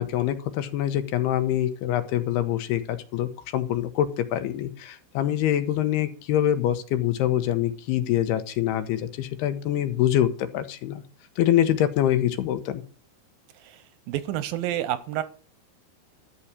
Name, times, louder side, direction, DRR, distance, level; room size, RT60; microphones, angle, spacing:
voice 1, 0.0-11.0 11.4-12.8, left 11 dB, 85° left, 11 dB, 2.9 m, -25 dB
voice 2, 13.5-15.2, right 12 dB, 75° right, 14 dB, 2.2 m, -30 dB
12.5 x 5.8 x 8.2 m, 0.42 s
omnidirectional pair, 4.7 m